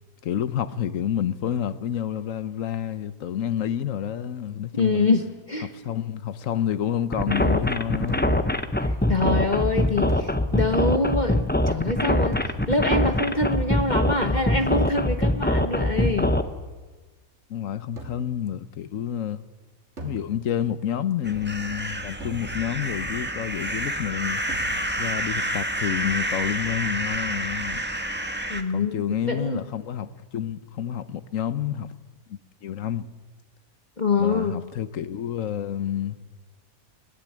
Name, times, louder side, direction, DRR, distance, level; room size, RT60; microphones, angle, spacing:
voice 1, 0.2-5.1 5.6-8.4 17.5-19.4 20.0-24.4 25.0-27.8 28.7-31.9 32.3-33.1 34.2-36.2, left 9 dB, 65° left, 1.2 m, -29 dB
voice 2, 4.7-5.2 5.5-5.7 8.8-16.3 28.5-29.6 34.0-34.6, left 3 dB, 35° left, 1.3 m, -25 dB
sound 1, 7.1-16.4, left 1 dB, 10° left, 0.7 m, -23 dB
sound 2, 8.1-8.6 10.1-11.0 12.3-13.1 14.6-15.3 18.0-18.5 20.0-20.8 22.2-23.0 24.5-25.2, right 1 dB, 50° right, 3.2 m, -42 dB
sound 3, 21.2-28.6, right 1 dB, 10° right, 1.3 m, -29 dB
21.5 x 18.5 x 8.9 m
omnidirectional pair, 1.5 m